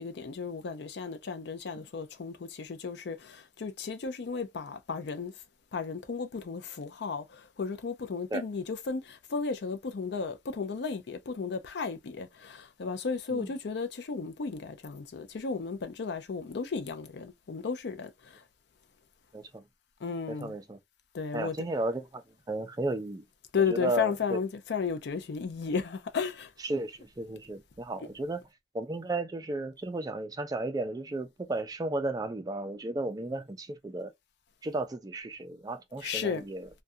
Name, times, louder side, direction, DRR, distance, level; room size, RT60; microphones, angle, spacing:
voice 1, 0.0-5.3 5.7-18.1 20.0-20.5 21.1-21.5 23.5-26.5 36.0-36.4, left 5 dB, 65° left, 0.5 m, -34 dB
voice 2, 20.3-20.8 21.3-22.2 22.5-23.2 23.7-24.4 26.6-28.4 28.7-34.1 34.6-36.7, right 2 dB, 20° right, 0.4 m, -34 dB
2.4 x 2.2 x 2.6 m
head